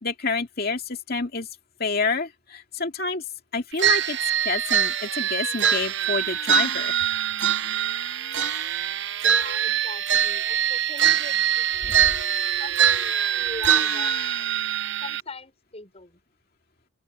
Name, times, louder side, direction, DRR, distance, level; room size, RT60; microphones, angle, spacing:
voice 1, 0.0-1.5 1.8-3.2 3.5-4.2 4.4-6.9 11.8-12.2, left 4 dB, 45° left, 2.5 m, -28 dB
sound 1, 3.8-15.2, right 9 dB, 60° right, 1.0 m, -23 dB
voice 2, 9.3-12.3 12.6-14.6 15.0-16.2, left 3 dB, 30° left, 6.3 m, -42 dB
open air
head